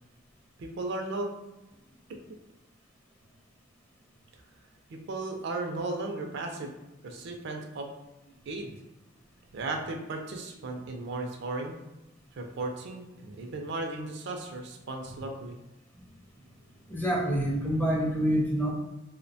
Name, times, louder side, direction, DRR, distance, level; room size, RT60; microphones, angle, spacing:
voice 1, 0.6-1.3 4.9-6.7 7.0-7.9 8.5-8.8 9.5-11.7 12.3-15.6, right 2 dB, 60° right, 3 dB, 0.4 m, -35 dB
voice 2, 16.9-18.7, equal, 10° left, -3 dB, 0.5 m, -26 dB
2.7 x 2.1 x 2.6 m, 0.99 s
head